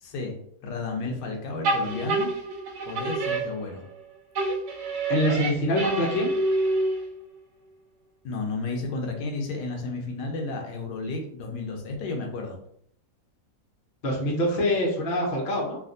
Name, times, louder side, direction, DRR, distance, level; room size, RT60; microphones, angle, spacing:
voice 1, 0.0-0.4 0.6-2.3 2.9-3.8 8.2-12.6, left 3 dB, 75° left, 1 dB, 1.2 m, -32 dB
sound 1, 1.6-4.0 4.3-7.2, right 2 dB, 70° right, 0.7 m, -27 dB
voice 2, 5.1-6.3 14.0-15.8, equal, 50° left, -1 dB, 0.6 m, -24 dB
3.3 x 2.4 x 2.5 m, 0.68 s
omnidirectional pair, 1.8 m